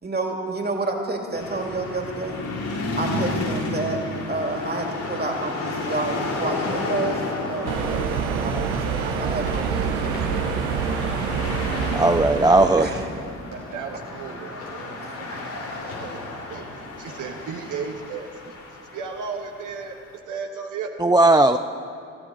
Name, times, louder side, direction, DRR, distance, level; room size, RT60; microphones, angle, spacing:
voice 1, 0.0-2.4 3.0-4.0 4.3-7.2 7.5-10.2 12.7-13.0 15.0-15.4, right 2 dB, 30° right, 1 dB, 2.8 m, -29 dB
sound 1, 1.3-19.8, left 2 dB, 60° left, 4.3 m, -32 dB
sound 2, 4.2-18.1, left 2 dB, 85° left, 2.9 m, -41 dB
sound 3, 7.6-13.2, right 6 dB, 85° right, 1.1 m, -26 dB
voice 2, 11.9-12.9 21.0-21.6, right 2 dB, 10° right, 9 dB, 0.5 m, -16 dB
voice 3, 13.5-16.2 16.5-18.5 18.9-20.0 20.3-20.9, right 5 dB, 60° right, 3 dB, 1.2 m, -35 dB
20.5 x 14.5 x 4.3 m, 2.5 s
hypercardioid pair, 45°, 35 cm